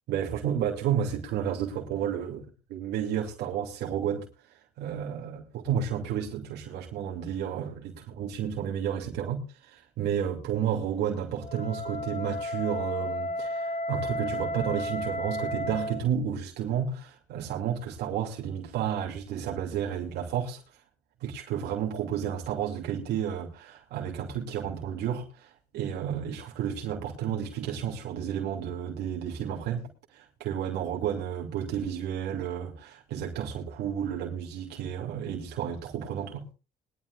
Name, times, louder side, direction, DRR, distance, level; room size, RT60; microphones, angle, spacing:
voice 1, 0.1-4.3 4.8-20.6 21.2-29.8 30.1-36.4, right 9 dB, 80° right, 2.8 m, -31 dB
Wind instrument woodwind instrument, 11.4-16.0, left 1 dB, 45° left, 4.5 m, -33 dB
21.5 x 12.0 x 2.5 m
cardioid pair, 110°, 17 cm